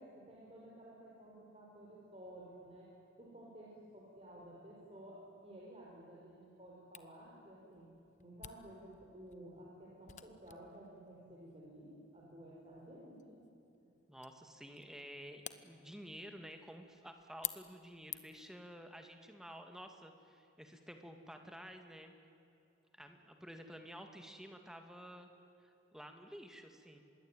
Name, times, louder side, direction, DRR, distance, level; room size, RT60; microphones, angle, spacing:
voice 1, 0.0-2.9 3.2-7.9 8.2-13.4 13.8-13.9, right 1 dB, 30° right, -4 dB, 4.9 m, -54 dB
Camera, 6.9-18.5, left 12 dB, 40° left, 1.0 m, -52 dB
voice 2, 14.1-22.1 22.9-25.3 25.6-27.0, equal, 5° right, 5 dB, 2.1 m, -52 dB
26.0 x 21.5 x 9.1 m, 2.9 s
head